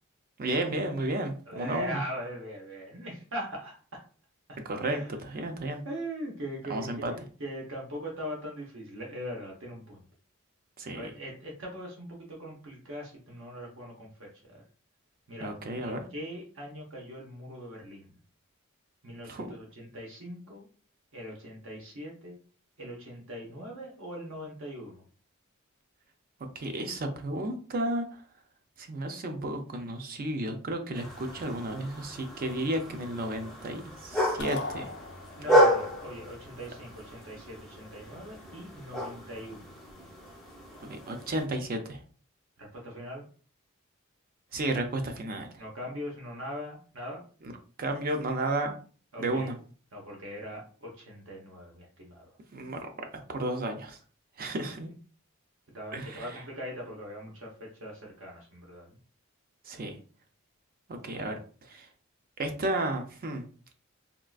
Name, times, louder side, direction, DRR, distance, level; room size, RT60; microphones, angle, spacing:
voice 1, 0.4-2.0 4.6-5.8 6.7-7.1 10.8-11.1 15.4-16.1 19.3-19.5 26.6-28.2 28.8-34.9 40.8-42.0 44.5-45.6 47.4-47.5 47.8-48.8 49.2-49.5 52.5-54.0 54.4-54.9 55.9-56.4 59.6-60.0 60.9-61.4 61.7-61.9 62.4-63.4, right 1 dB, 40° right, 5 dB, 0.4 m, -33 dB
voice 2, 1.5-4.0 4.5-4.6 4.9-5.5 5.8-10.0 10.9-14.6 15.3-15.5 15.8-18.1 19.0-20.7 21.1-22.4 22.8-25.0 35.4-39.6 42.6-43.3 45.6-47.2 49.1-49.5 49.9-52.2 54.4-54.6 55.7-59.0 61.1-61.3, equal, 60° right, -1 dB, 0.9 m, -41 dB
sound 1, 30.9-41.5, equal, ahead, 0.6 m, -31 dB
sound 2, 34.4-35.7, left 3 dB, 50° left, 0.4 m, -37 dB
3.6 x 2.4 x 2.3 m, 0.40 s
head